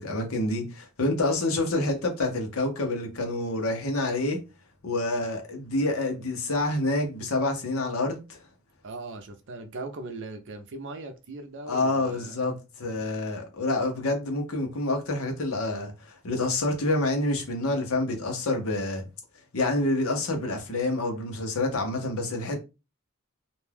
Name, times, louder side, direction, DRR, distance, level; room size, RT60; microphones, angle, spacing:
voice 1, 0.0-4.4 4.8-8.4 11.7-19.0 19.5-22.6, left 2 dB, 70° left, 0.9 m, -27 dB
voice 2, 8.8-12.4, right 2 dB, 60° right, 0.6 m, -39 dB
2.5 x 2.3 x 3.3 m
head